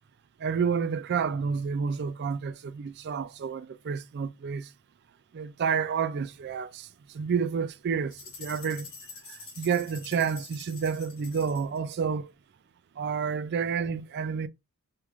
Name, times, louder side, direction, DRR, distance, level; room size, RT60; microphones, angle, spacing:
voice 1, 0.4-4.7 5.3-8.9 9.3-12.3 13.0-14.5, right 6 dB, 50° right, 0.3 m, -30 dB
sound 1, 8.1-11.8, left 5 dB, 60° left, 1.1 m, -46 dB
3.3 x 2.4 x 3.0 m
head